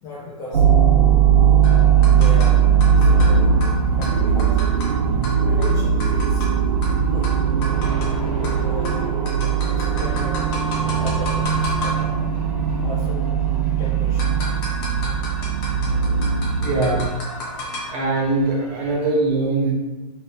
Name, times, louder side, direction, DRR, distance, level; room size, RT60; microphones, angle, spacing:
voice 1, 0.0-0.7 2.1-3.6 3.9-4.6 5.5-6.5 7.0-7.4 8.4-10.5 11.0-12.2 12.8-13.3 13.8-14.4, left 2 dB, 15° left, -5 dB, 0.4 m, -36 dB
sound 1, 0.5-17.1, right 8 dB, 90° right, 0.5 m, -19 dB
sound 2, 1.6-19.1, equal, 35° left, 1.3 m, -33 dB
sound 3, 2.5-13.1, left 5 dB, 65° right, 0.9 m, -33 dB
voice 2, 16.6-17.1 17.9-19.7, right 2 dB, 30° right, -3 dB, 1.0 m, -21 dB
4.2 x 2.9 x 3.3 m, 1.1 s
hypercardioid pair, 150°, 21 cm